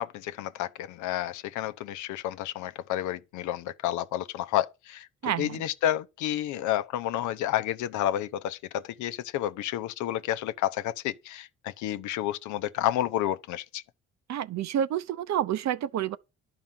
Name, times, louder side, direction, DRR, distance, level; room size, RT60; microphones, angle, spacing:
voice 1, 0.0-13.8, left 12 dB, 85° left, 0.7 m, -30 dB
voice 2, 5.2-5.6 14.3-16.2, right 10 dB, 65° right, 0.8 m, -29 dB
11.0 x 4.9 x 7.4 m
cardioid pair, 75°, 29 cm